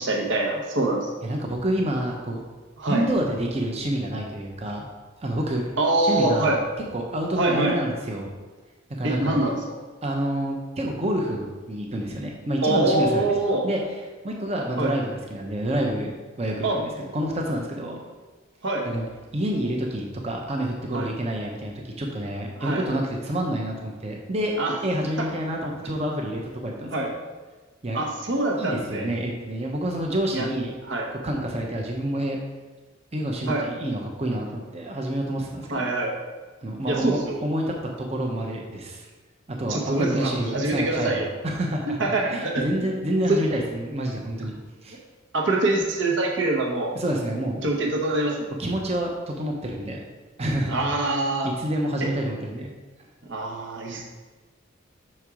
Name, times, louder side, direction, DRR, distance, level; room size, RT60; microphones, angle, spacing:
voice 1, 0.0-1.1 2.8-3.1 5.8-6.6 7.4-7.8 9.0-9.6 12.6-13.7 14.8-14.9 16.6-16.8 18.6-18.9 20.9-21.1 22.6-22.8 24.6-24.7 26.9-27.1 27.9-29.1 30.3-30.5 30.8-31.1 33.5-33.6 35.7-36.1 36.9-37.4 39.7-41.3 42.0-42.9 43.3-43.5 45.3-46.9 47.6-48.5 50.7-51.5 52.0-52.1 53.3-54.0, right 2 dB, 60° right, 0 dB, 0.9 m, -24 dB
voice 2, 1.2-2.4 2.8-4.8 5.2-5.6 6.0-6.6 6.9-8.3 9.0-9.4 10.0-13.2 13.6-13.8 14.2-16.1 16.4-18.0 18.8-19.0 19.3-24.5 24.8-27.1 27.8-28.0 28.6-30.7 31.2-32.4 33.1-35.9 36.6-39.1 39.5-44.5 44.8-45.0 46.9-47.6 48.6-50.0 50.4-50.9 51.6-52.7 53.9-54.0, right 1 dB, 30° right, 0 dB, 0.8 m, -28 dB
6.1 x 4.3 x 4.8 m, 1.3 s
head